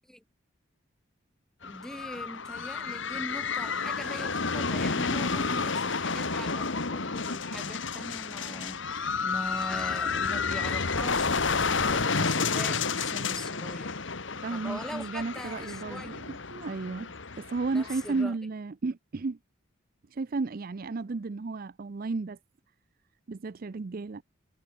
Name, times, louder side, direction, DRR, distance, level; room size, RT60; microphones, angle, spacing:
sound 1, 1.6-18.2, left 4 dB, 60° left, 1.6 m, -31 dB
voice 1, 1.6-14.0 14.5-16.2 17.7-18.3, equal, ahead, 1.8 m, -42 dB
voice 2, 14.4-17.1 17.4-19.4 20.1-22.4 23.3-24.2, right 3 dB, 45° right, 0.5 m, -33 dB
head